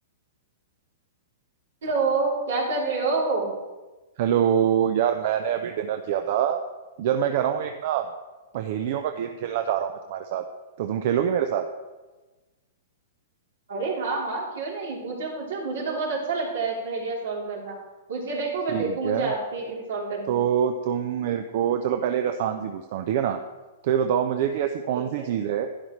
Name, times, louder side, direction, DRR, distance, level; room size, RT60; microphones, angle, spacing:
voice 1, 1.8-3.5 13.7-17.7 18.1-20.4 24.9-25.2, right 3 dB, 75° right, -3 dB, 3.3 m, -28 dB
voice 2, 4.2-6.6 7.0-8.1 8.5-10.4 10.8-11.6 18.7-19.3 20.3-23.4 23.8-25.7, right 9 dB, 55° right, 7 dB, 0.6 m, -25 dB
11.5 x 10.5 x 3.2 m, 1.2 s
hypercardioid pair, 145°, 0 cm